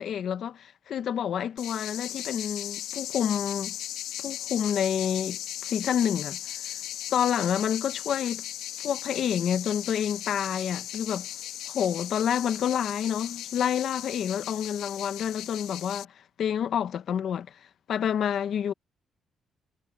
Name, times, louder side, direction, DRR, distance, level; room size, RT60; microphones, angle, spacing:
voice 1, 0.0-3.8 4.2-6.4 7.1-8.4 8.8-11.3 11.7-16.1 16.4-17.6 17.9-18.7, left 9 dB, 65° left, 1.2 m, -28 dB
sound 1, 1.6-16.0, left 12 dB, 90° left, 2.3 m, -37 dB
cardioid pair, 90°, 0 cm